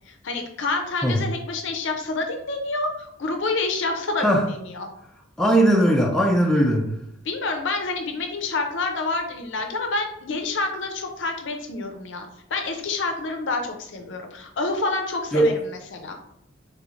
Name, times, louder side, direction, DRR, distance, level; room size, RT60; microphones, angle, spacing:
voice 1, 0.1-4.9 7.2-16.2, left 3 dB, 60° left, 4 dB, 0.5 m, -28 dB
voice 2, 5.4-6.9 15.3-15.5, right 1 dB, ahead, -1 dB, 0.4 m, -19 dB
3.4 x 3.1 x 2.4 m, 0.78 s
head